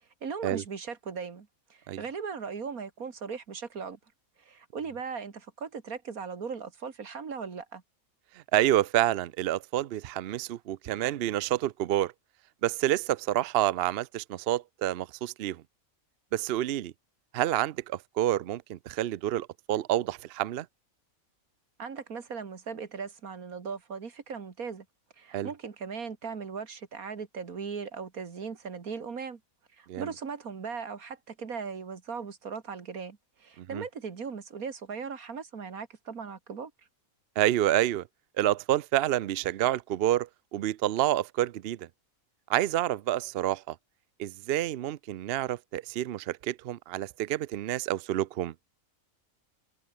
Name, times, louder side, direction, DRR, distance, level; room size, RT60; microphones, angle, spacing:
voice 1, 0.2-4.0 4.4-7.8 21.8-24.9 25.2-29.4 29.7-36.7, right 5 dB, 75° right, 2.4 m, -38 dB
voice 2, 8.5-12.1 12.6-15.6 16.3-16.9 17.3-20.7 25.3-25.5 29.9-30.1 33.6-33.8 37.4-38.0 38.4-41.9 42.5-43.8 44.2-48.5, right 13 dB, 60° right, 0.6 m, -28 dB
omnidirectional pair, 1.5 m